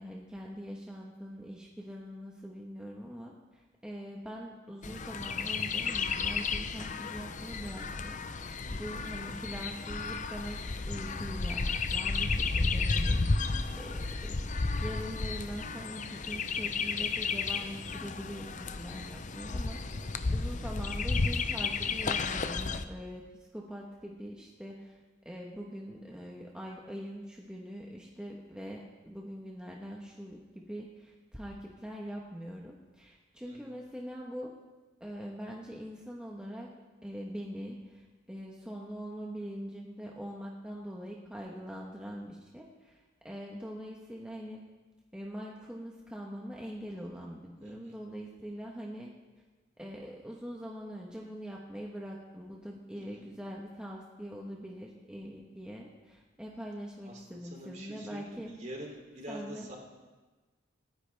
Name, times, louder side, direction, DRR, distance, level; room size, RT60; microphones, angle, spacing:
voice 1, 0.0-23.2 23.5-34.6 35.0-36.7 37.0-44.6 45.1-49.1 49.8-58.5 59.3-59.7, equal, 5° right, -2 dB, 1.2 m, -43 dB
Chirp tweet, 4.8-22.8, left 4 dB, 40° left, 0.6 m, -33 dB
voice 2, 19.8-20.2 33.4-33.6 47.6-47.9 53.0-53.2 57.0-59.8, right 1 dB, 40° right, 0 dB, 3.1 m, -46 dB
26.0 x 10.0 x 3.4 m, 1.3 s
head